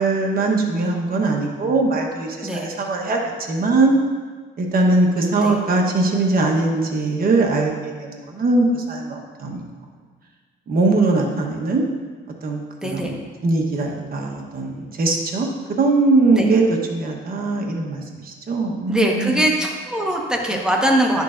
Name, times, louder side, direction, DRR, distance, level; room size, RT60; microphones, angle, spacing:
voice 1, 0.0-3.2 3.5-4.0 4.6-9.6 10.7-11.8 12.4-15.5 15.8-16.6 16.9-19.5, right 3 dB, 50° right, 1 dB, 1.2 m, -21 dB
voice 2, 12.8-13.1 16.4-16.5 18.9-21.2, right 1 dB, 5° right, -1 dB, 1.3 m, -21 dB
10.5 x 6.7 x 2.6 m, 1.5 s
cardioid pair, 90°, 20 cm